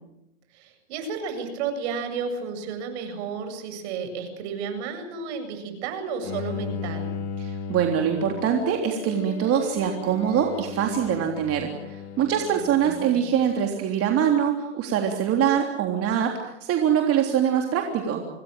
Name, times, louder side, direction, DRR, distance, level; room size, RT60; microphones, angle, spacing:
voice 1, 0.5-7.1 12.5-13.2, right 5 dB, 65° right, 8 dB, 7.9 m, -32 dB
Bowed string instrument, 6.2-13.5, left 6 dB, 45° left, 3.4 m, -36 dB
voice 2, 7.4-18.2, right 8 dB, 40° right, 3 dB, 3.5 m, -24 dB
26.5 x 20.0 x 9.2 m, 0.88 s
hypercardioid pair, 115°, 36 cm